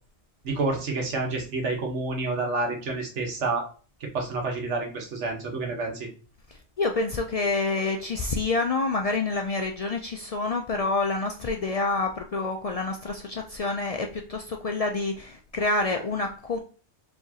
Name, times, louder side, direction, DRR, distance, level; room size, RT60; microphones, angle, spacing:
voice 1, 0.4-3.7 4.1-6.1, right 3 dB, 85° right, 1 dB, 1.4 m, -29 dB
voice 2, 6.5-16.6, left 3 dB, 65° left, 3 dB, 0.3 m, -28 dB
4.7 x 3.2 x 2.8 m, 0.38 s
omnidirectional pair, 1.2 m